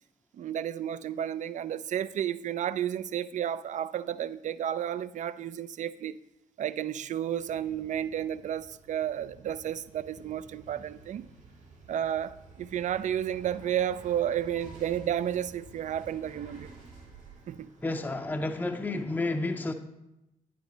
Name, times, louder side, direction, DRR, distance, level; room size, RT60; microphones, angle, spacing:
voice 1, 0.3-6.2 6.6-11.3 11.9-16.7 17.5-17.7, right 10 dB, 45° right, 0.4 m, -32 dB
sound 1, 7.4-18.8, right 3 dB, 80° right, 2.7 m, -52 dB
voice 2, 17.8-19.7, left 2 dB, 10° left, 0.6 m, -31 dB
9.4 x 5.1 x 3.9 m
hypercardioid pair, 40°, 17 cm